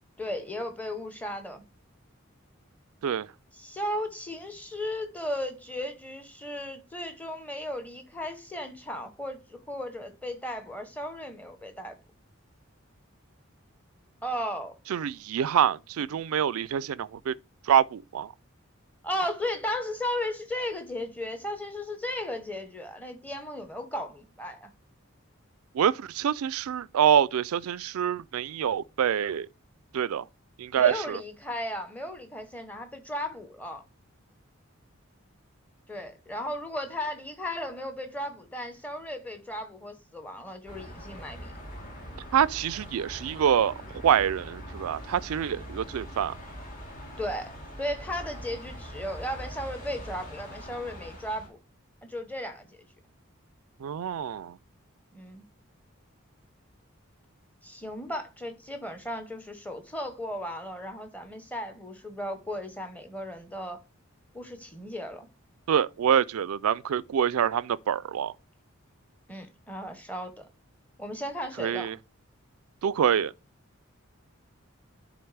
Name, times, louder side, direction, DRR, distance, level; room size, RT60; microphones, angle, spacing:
voice 1, 0.2-1.6 3.5-12.0 14.2-14.7 19.0-24.7 30.8-33.8 35.9-41.6 47.2-51.6 52.0-52.8 55.1-55.5 57.6-63.8 64.3-65.3 69.3-70.5 71.0-71.9, left 1 dB, 5° left, 1.0 m, -35 dB
voice 2, 14.9-17.3 17.7-18.3 25.7-29.5 29.9-30.3 30.6-31.2 42.3-46.3 53.8-54.6 65.7-68.3 71.6-72.0 72.8-73.3, right 9 dB, 90° right, 0.4 m, -26 dB
sound 1, 40.7-51.5, equal, 40° left, 2.4 m, -42 dB
11.0 x 3.9 x 3.3 m
head